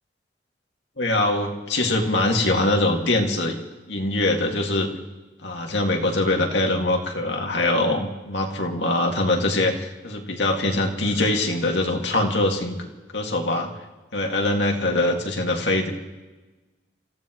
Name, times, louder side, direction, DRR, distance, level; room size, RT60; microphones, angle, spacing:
voice 1, 1.0-3.6 3.9-4.9 5.4-12.9 13.1-13.7 14.1-15.9, left 2 dB, 75° left, 2 dB, 2.2 m, -23 dB
27.5 x 16.0 x 3.1 m, 1.2 s
head